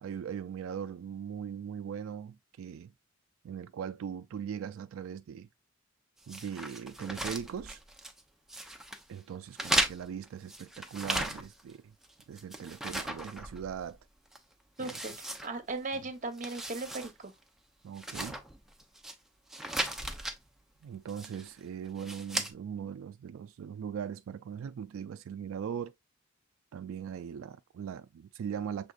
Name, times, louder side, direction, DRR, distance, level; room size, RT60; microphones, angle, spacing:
voice 1, 0.0-2.9 3.4-5.5 6.3-7.8 9.1-11.9 12.3-14.0 14.8-15.0 17.8-18.4 20.8-25.9 26.7-28.9, right 8 dB, 90° right, 0.3 m, -40 dB
sound 1, 6.3-8.2 8.5-9.0 9.5-11.7 12.0-13.9 14.3-14.4 14.8-16.0 16.3-17.1 17.4-17.5 17.9-19.1 19.5-20.4 21.1-21.5 22.0-22.5, right 1 dB, ahead, 0.6 m, -36 dB
voice 2, 14.8-17.3, right 3 dB, 40° right, 0.9 m, -37 dB
6.4 x 3.5 x 2.4 m
head